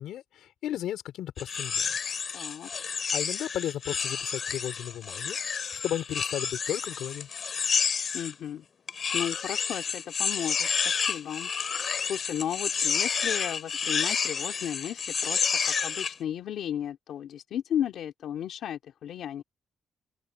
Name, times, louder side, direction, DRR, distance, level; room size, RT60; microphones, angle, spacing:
voice 1, 0.0-1.7 3.1-5.4 5.8-7.3, left 12 dB, 90° left, 4.2 m, -34 dB
sound 1, 1.4-8.3 8.9-16.1, left 6 dB, 40° left, 2.3 m, -30 dB
voice 2, 2.3-2.7 8.1-8.7 9.1-19.4, left 10 dB, 70° left, 2.3 m, -34 dB
open air
cardioid pair, 145°, 0 cm